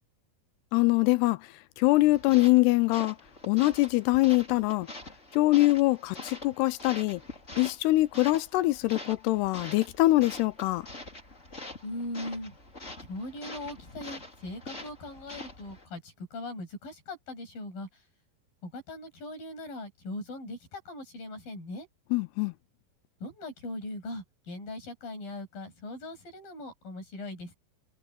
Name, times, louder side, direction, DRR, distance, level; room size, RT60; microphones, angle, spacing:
voice 1, 0.7-1.4 1.8-3.2 3.5-4.9 5.3-7.2 7.6-10.9 22.1-22.5, left 19 dB, 80° left, 2.6 m, -23 dB
sound 1, 2.0-15.9, left 2 dB, 15° left, 5.5 m, -44 dB
voice 2, 11.8-12.5 13.0-17.9 18.6-21.9 23.2-27.5, left 1 dB, 55° left, 9.9 m, -40 dB
omnidirectional pair, 4.9 m